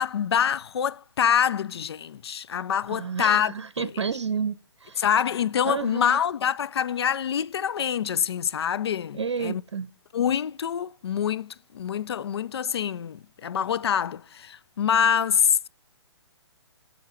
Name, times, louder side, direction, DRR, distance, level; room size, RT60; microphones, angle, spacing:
voice 1, 0.0-3.9 5.0-9.6 10.1-15.7, left 8 dB, 65° left, 0.4 m, -25 dB
voice 2, 2.9-5.0 5.6-6.2 9.2-9.9, right 6 dB, 75° right, 0.8 m, -30 dB
7.1 x 6.7 x 5.7 m
hypercardioid pair, 145°, 15 cm